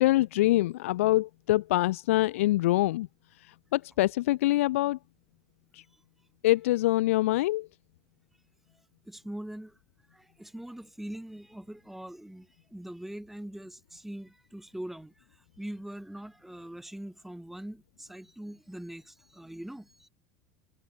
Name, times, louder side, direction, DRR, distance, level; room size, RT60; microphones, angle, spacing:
voice 1, 0.0-3.1 3.4-5.0 5.7-5.8 6.4-7.7, left 17 dB, 80° left, 2.3 m, -25 dB
voice 2, 9.1-9.8 10.1-20.1, right 1 dB, 5° right, 6.6 m, -42 dB
supercardioid pair, 100°, 7 cm